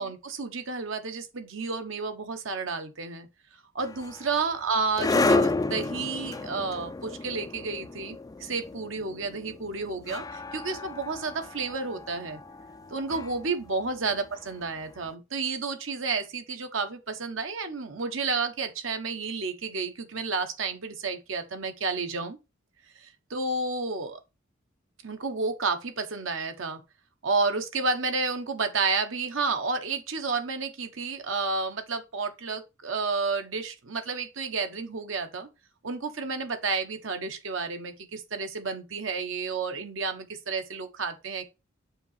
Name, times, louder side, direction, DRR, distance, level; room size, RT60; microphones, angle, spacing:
voice 1, 0.0-3.3 3.7-12.4 12.9-22.4 23.0-24.2 25.0-26.8 27.2-35.5 35.8-41.4, right 4 dB, 70° right, 1.2 m, -31 dB
sound 1, 3.8-14.9, left 3 dB, 20° left, 0.4 m, -32 dB
7.0 x 2.9 x 5.6 m
head